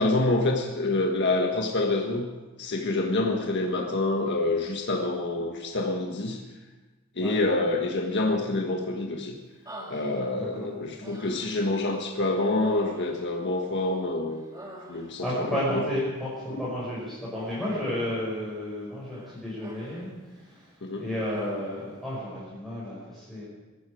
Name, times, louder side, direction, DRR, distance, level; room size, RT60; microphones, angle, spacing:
voice 1, 0.0-2.3 2.6-6.4 7.2-9.3 9.9-14.4 14.9-15.8 20.8-21.0, left 2 dB, 55° left, 1 dB, 1.6 m, -27 dB
Human voice, 9.7-10.6 11.0-11.8 12.5-14.0 14.3-15.4 17.4-18.1 19.1-20.1 20.4-20.7 21.1-21.9, equal, 15° right, 2.6 m, -46 dB
voice 2, 10.3-10.7 11.0-11.1 15.2-20.7 21.0-23.4, left 1 dB, ahead, -9 dB, 5.6 m, -32 dB
22.5 x 13.0 x 5.0 m, 1.2 s
head